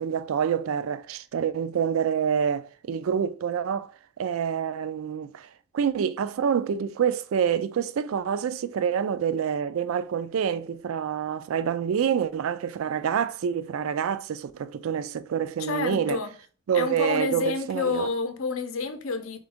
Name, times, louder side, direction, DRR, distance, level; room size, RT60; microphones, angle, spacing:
voice 1, 0.0-3.9 4.2-5.5 5.7-16.2 16.7-18.1, right 8 dB, 70° right, 0.3 m, -27 dB
voice 2, 15.6-16.3 16.7-19.4, left 4 dB, 70° left, 0.6 m, -29 dB
3.8 x 3.4 x 3.5 m
head